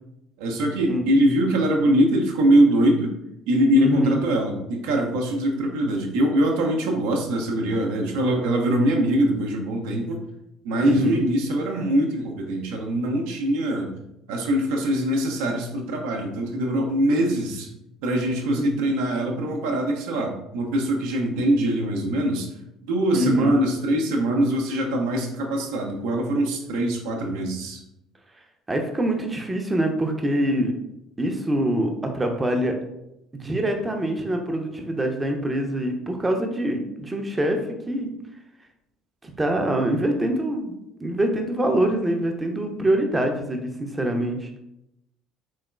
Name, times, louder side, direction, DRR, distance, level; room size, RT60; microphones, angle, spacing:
voice 1, 0.4-3.1 3.5-10.2 10.6-13.9 14.3-17.7 18.0-22.5 22.9-27.8, right 1 dB, 65° right, 1 dB, 0.5 m, -22 dB
voice 2, 3.8-4.3 10.8-11.2 18.5-18.7 23.1-23.5 28.7-30.7 31.2-32.7 33.4-38.2 39.2-40.7 41.0-44.5, right 1 dB, 15° right, 3 dB, 0.6 m, -24 dB
3.5 x 3.1 x 2.3 m, 0.85 s
figure-of-eight pair, 55°, 0 cm